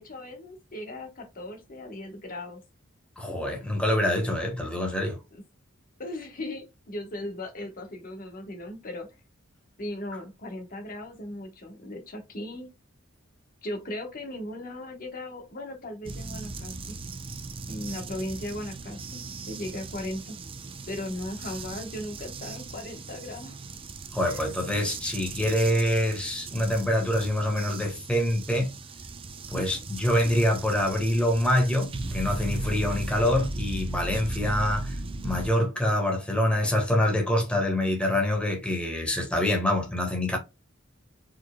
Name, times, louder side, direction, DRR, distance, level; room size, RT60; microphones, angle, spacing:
voice 1, 0.0-2.6 5.3-5.4 6.0-9.1 9.8-12.7 13.6-17.0 17.7-20.4 20.9-23.6 24.2-24.5 29.5-29.8 30.2-30.3, left 1 dB, 45° left, 1.1 m, -37 dB
voice 2, 3.2-5.2 24.1-28.7 29.5-40.4, left 1 dB, 5° left, 1.3 m, -25 dB
sound 1, 16.0-35.5, right 2 dB, 25° right, 0.5 m, -37 dB
4.6 x 4.4 x 2.2 m
head